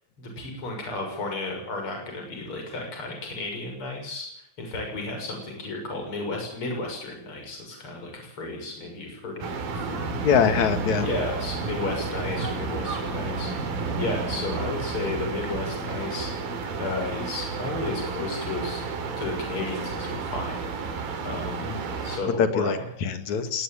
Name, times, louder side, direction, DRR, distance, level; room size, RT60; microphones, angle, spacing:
voice 1, 0.2-4.3 4.6-10.1 11.0-16.3 16.8-18.8 19.2-21.7 22.0-22.7, left 2 dB, 35° left, 2 dB, 7.2 m, -33 dB
sound 1, 9.4-22.2, right 4 dB, 85° right, 4.5 m, -31 dB
voice 2, 10.1-11.1 21.6-21.8 22.4-23.6, left 7 dB, 60° left, 9 dB, 3.1 m, -24 dB
20.0 x 18.5 x 8.8 m, 0.77 s
omnidirectional pair, 4.0 m